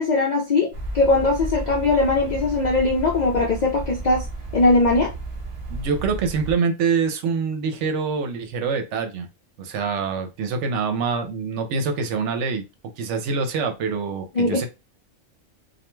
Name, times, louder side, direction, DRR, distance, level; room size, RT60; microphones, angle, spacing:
voice 1, 0.0-4.2 4.5-5.1 14.4-14.7, left 3 dB, 65° left, -1 dB, 0.4 m, -20 dB
sound 1, 0.7-6.5, right 2 dB, 55° right, 0.3 m, -33 dB
voice 2, 5.7-9.3 9.6-12.6 12.9-14.7, right 5 dB, 75° right, 6 dB, 0.9 m, -25 dB
2.3 x 2.2 x 3.0 m, 0.26 s
omnidirectional pair, 1.3 m